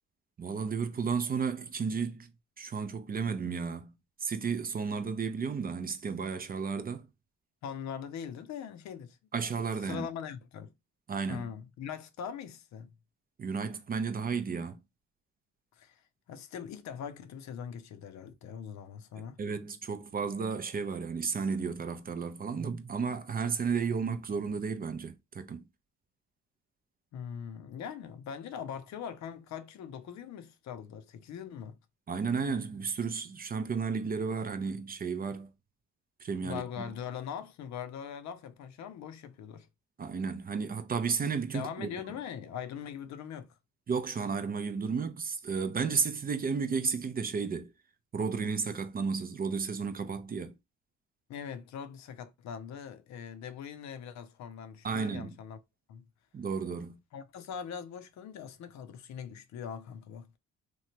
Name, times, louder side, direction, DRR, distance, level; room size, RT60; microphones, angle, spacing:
voice 1, 0.4-2.3 2.6-3.9 4.2-7.1 9.3-10.1 11.1-11.5 13.4-14.8 19.4-25.6 32.1-35.5 36.2-36.6 40.0-41.9 43.9-47.7 48.1-50.6 54.8-55.4 56.3-57.0, right 5 dB, 30° right, 0.4 m, -33 dB
voice 2, 7.6-9.2 9.8-10.7 11.3-12.9 15.8-16.0 16.3-19.4 27.1-31.8 36.4-39.7 41.5-43.6 51.3-55.6 55.9-56.0 57.1-60.4, left 8 dB, 65° left, 0.5 m, -41 dB
3.0 x 2.2 x 2.8 m
cardioid pair, 90°, 30 cm